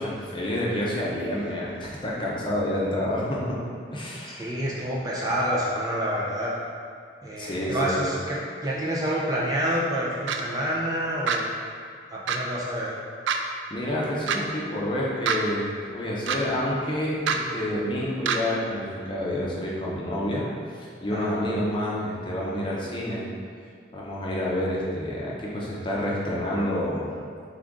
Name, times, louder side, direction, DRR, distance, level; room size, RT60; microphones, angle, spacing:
voice 1, 0.0-3.6 3.9-4.6 7.4-8.0 13.7-20.5 20.7-23.2 23.9-27.1, left 1 dB, 25° left, -5 dB, 0.7 m, -28 dB
voice 2, 4.4-6.5 7.2-11.5 12.1-12.9 21.1-21.4, equal, 20° right, -5 dB, 0.5 m, -28 dB
sound 1, 10.3-10.4 11.3-11.4 12.3-12.4 13.3-13.4 14.3-14.4 15.3-15.4 16.3-16.4 17.3-17.4 18.3-18.4, right 7 dB, 80° right, 0.3 m, -24 dB
3.8 x 3.7 x 3.6 m, 2.2 s
head